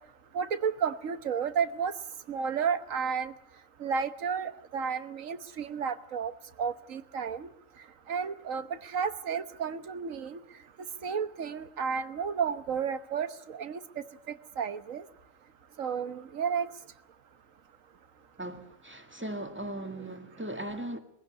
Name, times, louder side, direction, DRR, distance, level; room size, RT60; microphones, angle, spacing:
voice 1, 0.3-1.9 2.3-3.3 3.8-6.3 6.6-7.5 8.1-10.4 11.0-13.8 14.6-15.0 15.8-16.7, right 6 dB, 75° right, 12 dB, 1.5 m, -32 dB
voice 2, 18.4-21.0, right 1 dB, 10° right, 6 dB, 2.0 m, -38 dB
22.5 x 16.0 x 9.6 m, 0.76 s
omnidirectional pair, 1.4 m